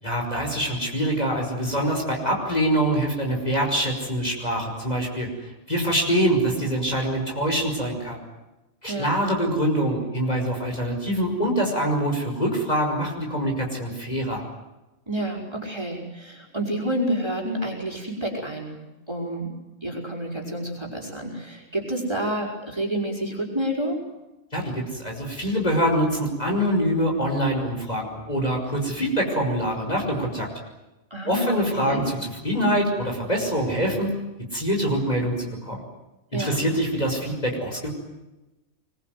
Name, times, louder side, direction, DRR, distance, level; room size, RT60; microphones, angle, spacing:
voice 1, 0.0-8.2 8.8-14.4 24.5-30.5 31.2-34.2 34.5-35.8 36.3-37.9, equal, 30° left, 0 dB, 5.8 m, -25 dB
voice 2, 15.1-18.8 19.1-19.5 19.8-24.0 31.1-32.0 36.3-36.6, right 1 dB, 20° right, 1 dB, 5.7 m, -29 dB
25.5 x 22.0 x 9.5 m, 1.0 s
omnidirectional pair, 1.4 m